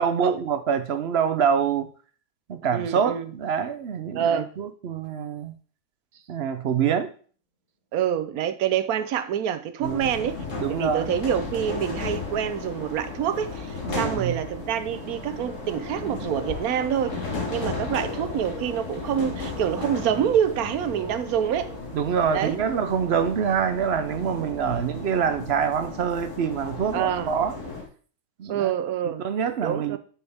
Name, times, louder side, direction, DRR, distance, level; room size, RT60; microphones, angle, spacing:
voice 1, 0.0-1.9 2.5-5.5 6.3-7.1 9.8-10.1 10.6-11.1 13.9-14.4 21.9-27.6 28.4-28.7 29.2-30.0, right 7 dB, 55° right, 0.8 m, -25 dB
voice 2, 2.7-3.3 4.1-4.5 7.9-17.2 17.5-21.7 22.3-22.6 26.9-27.3 28.5-29.3 29.6-30.0, right 9 dB, 85° right, 1.2 m, -26 dB
sound 1, 9.8-27.8, left 3 dB, 60° left, 2.2 m, -35 dB
sound 2, 11.9-26.0, equal, 30° left, 3.4 m, -45 dB
9.7 x 6.5 x 3.5 m
omnidirectional pair, 1.5 m